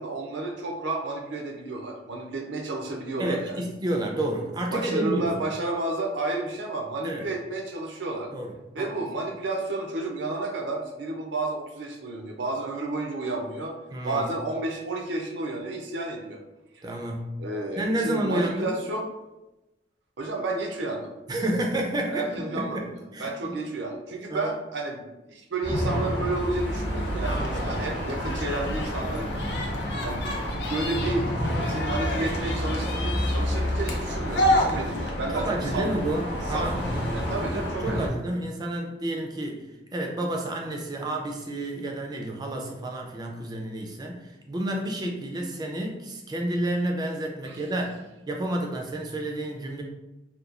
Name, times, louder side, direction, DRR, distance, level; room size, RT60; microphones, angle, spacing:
voice 1, 0.0-3.6 4.7-8.3 8.7-13.8 14.0-16.4 16.7-16.9 17.4-19.1 20.2-21.1 22.1-22.8 23.2-29.3 30.0-30.3 30.7-31.3 31.6-35.9 36.5-38.0 47.4-47.6, right 2 dB, 75° right, 2 dB, 0.5 m, -31 dB
voice 2, 3.2-5.5 7.0-7.2 8.3-8.5 8.8-8.9 13.9-14.2 16.8-17.3 17.8-18.8 21.3-22.9 23.1-23.6 24.3-24.5 27.3-27.7 35.3-36.8 37.5-39.7 39.9-48.0 48.3-49.8, right 1 dB, 20° right, 1 dB, 0.3 m, -30 dB
sound 1, 25.6-38.1, equal, 85° left, 0.8 m, -29 dB
sound 2, 27.2-35.1, left 1 dB, 60° left, 0.5 m, -31 dB
2.9 x 2.2 x 2.4 m, 1.0 s
head